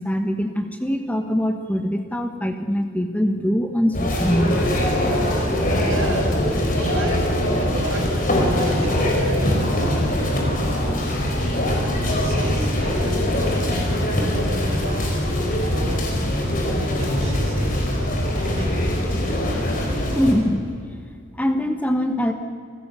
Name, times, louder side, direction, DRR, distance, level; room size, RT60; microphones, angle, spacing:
voice 1, 0.0-5.0 20.1-20.6 21.4-22.3, equal, 5° left, 6 dB, 1.2 m, -23 dB
sound 1, 3.9-20.3, left 1 dB, 40° left, 4.6 m, -22 dB
voice 2, 5.6-6.4 6.7-11.4 12.0-15.3 15.6-16.0 16.6-18.7, right 2 dB, 75° right, 2 dB, 4.8 m, -35 dB
27.5 x 16.0 x 6.9 m, 2.2 s
head